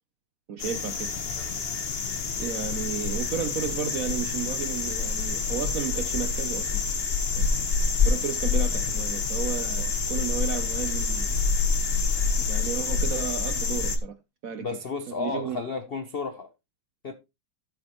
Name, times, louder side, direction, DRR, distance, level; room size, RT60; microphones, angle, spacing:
voice 1, 0.5-1.2 1.7-1.9 2.4-6.8 7.3-7.5 8.0-11.3 12.4-14.2 14.4-14.8 15.1-15.6, right 8 dB, 65° right, 0.9 m, -33 dB
sound 1, 0.6-14.0, left 4 dB, 35° left, 1.1 m, -27 dB
voice 2, 14.6-16.5 17.0-17.1, left 4 dB, 85° left, 0.5 m, -32 dB
14.0 x 6.4 x 3.0 m
omnidirectional pair, 2.2 m